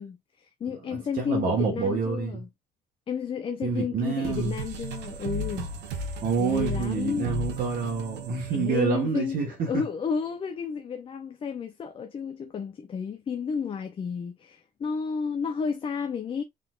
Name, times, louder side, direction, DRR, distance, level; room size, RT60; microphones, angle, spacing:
voice 1, 0.0-2.5 3.1-5.7 6.4-7.4 8.5-16.4, left 6 dB, 30° left, 0.5 m, -32 dB
voice 2, 0.9-2.4 3.6-4.5 6.2-9.8, right 5 dB, 55° right, 1.3 m, -27 dB
sound 1, 4.2-9.5, right 2 dB, 90° right, 1.1 m, -35 dB
4.0 x 3.9 x 2.3 m
cardioid pair, 135°, 17 cm